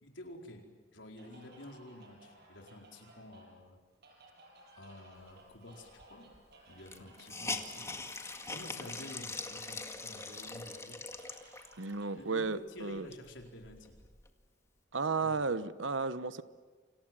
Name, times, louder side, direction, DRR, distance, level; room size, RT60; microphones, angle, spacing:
voice 1, 0.0-3.8 4.8-6.3 6.7-7.9 8.5-11.0 12.2-14.0 15.2-15.5, left 1 dB, 75° left, 3 dB, 4.7 m, -50 dB
sound 1, 1.2-12.3, right 2 dB, 60° right, 7.2 m, -59 dB
Hiss, 6.0-6.1 6.3-6.4 6.8-11.9 12.4-12.5 12.9-14.3, left 3 dB, 15° left, 2.0 m, -42 dB
voice 2, 11.8-13.1 14.9-16.4, right 4 dB, 85° right, 14 dB, 1.1 m, -33 dB
29.5 x 26.5 x 7.7 m, 1.5 s
head